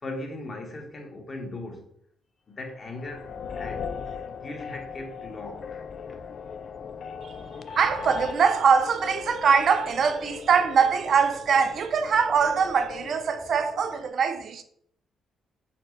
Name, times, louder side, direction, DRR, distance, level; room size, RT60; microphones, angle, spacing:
voice 1, 0.0-1.9 2.5-3.3 3.5-3.9 4.3-5.8 6.1-6.5 7.1-7.3, left 2 dB, 35° left, 1.2 m, -39 dB
sound 1, 2.8-14.1, left 6 dB, 55° left, 0.3 m, -39 dB
voice 2, 7.8-14.6, right 6 dB, 55° right, 0.4 m, -22 dB
4.3 x 3.8 x 3.2 m
cardioid pair, 90°, 0 cm